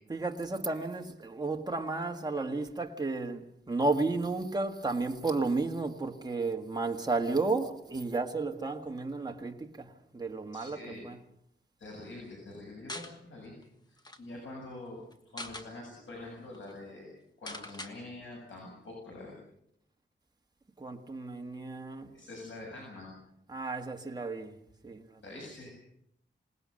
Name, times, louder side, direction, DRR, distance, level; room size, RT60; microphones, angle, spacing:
voice 1, 0.1-11.2 20.8-22.1 23.5-25.5, right 3 dB, 20° right, 1.8 m, -33 dB
voice 2, 10.5-11.0 11.8-13.5 13.9-17.1 17.4-19.4 22.1-23.1 25.2-25.7, left 2 dB, 80° left, 7.4 m, -45 dB
sound 1, 12.9-13.1 13.6-13.7 13.9-14.2 15.1-15.7 16.2-16.3 16.5-16.7 17.5-17.9, left 1 dB, 20° left, 1.6 m, -42 dB
27.0 x 19.0 x 6.5 m
wide cardioid pair, 145°, 19 cm